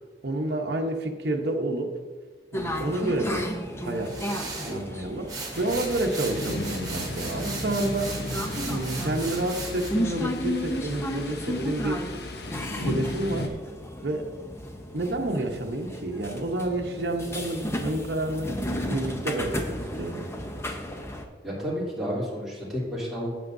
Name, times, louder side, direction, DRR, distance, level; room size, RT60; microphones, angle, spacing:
voice 1, 0.2-1.9 2.5-3.5 3.8-4.2 4.6-8.2 8.7-12.0 12.7-13.6 14.0-14.3 14.9-18.5 18.9-20.2, right 1 dB, 60° right, 2 dB, 1.0 m, -29 dB
sound 1, 2.5-21.2, equal, 15° left, 0.7 m, -34 dB
sound 2, 4.0-4.8 5.3-9.9, right 4 dB, 20° right, 1.5 m, -37 dB
Thunder, 5.5-13.5, left 1 dB, 60° left, 0.8 m, -35 dB
voice 2, 21.4-23.3, equal, ahead, -8 dB, 3.0 m, -31 dB
12.0 x 8.5 x 2.7 m, 1.4 s
head